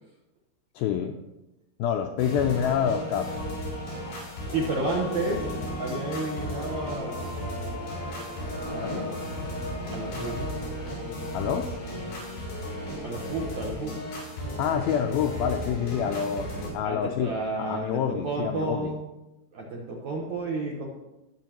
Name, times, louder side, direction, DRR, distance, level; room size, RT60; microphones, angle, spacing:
voice 1, 0.8-1.2 1.8-3.4 8.8-9.1 11.3-11.8 14.6-18.9, left 8 dB, 85° left, 4 dB, 2.1 m, -27 dB
sound 1, 2.2-16.7, left 1 dB, 60° left, 5.4 m, -34 dB
voice 2, 4.5-5.5 5.8-7.5 8.6-9.4 9.9-10.4 13.0-13.9 16.8-19.1 19.5-20.9, right 2 dB, 70° right, -1 dB, 1.8 m, -31 dB
20.0 x 7.6 x 3.0 m, 0.97 s
omnidirectional pair, 4.8 m